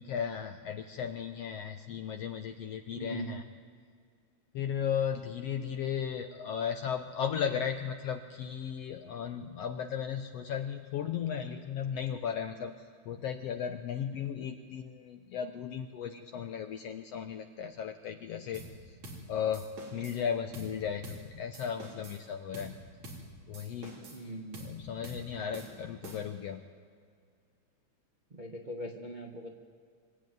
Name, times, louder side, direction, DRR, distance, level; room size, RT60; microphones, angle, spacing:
voice 1, 0.0-3.4 4.5-19.0 19.3-22.8 23.5-24.0 24.6-26.6, left 8 dB, 75° left, 7 dB, 1.5 m, -36 dB
voice 2, 2.9-3.4 24.1-24.7 28.3-29.5, equal, 35° right, 1 dB, 0.7 m, -40 dB
sound 1, 18.5-18.8 19.0-19.3 19.5-20.2 20.5-20.8 21.0-21.3 21.5-22.2 22.5-22.8 23.0-23.3 23.5-24.2 24.5-24.8 25.0-25.3 25.5-26.4, right 2 dB, 60° right, 4.8 m, -46 dB
25.0 x 13.0 x 9.3 m, 2.1 s
omnidirectional pair, 3.6 m